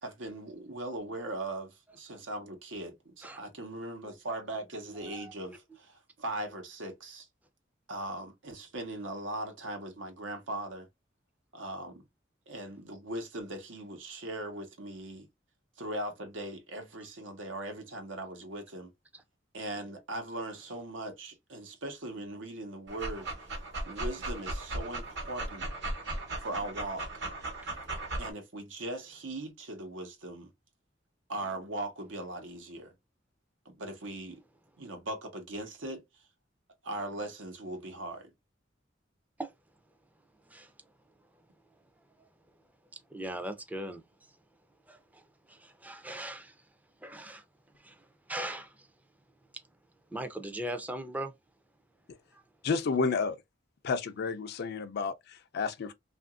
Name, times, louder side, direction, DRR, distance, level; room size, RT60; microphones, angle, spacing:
voice 1, 0.0-7.3 7.9-10.9 11.5-12.0 12.5-15.3 15.8-18.9 19.5-23.3 23.9-25.7 26.4-27.0 28.2-30.5 31.3-32.9 33.6-34.4 34.8-36.0 36.8-38.3, right 1 dB, 90° right, 1.0 m, -39 dB
voice 2, 5.0-5.6 19.1-19.2 23.2-23.3 27.6-27.7 39.4-39.5 40.5-40.7 43.1-44.0 44.9-46.6 47.0-47.4 47.8-48.9 50.1-51.3 52.3-52.4, right 1 dB, 10° right, 0.4 m, -40 dB
Dog, 22.9-28.3, right 2 dB, 65° right, 1.0 m, -37 dB
voice 3, 52.6-53.4 53.8-55.9, left 4 dB, 60° left, 0.4 m, -31 dB
2.9 x 2.5 x 2.4 m
head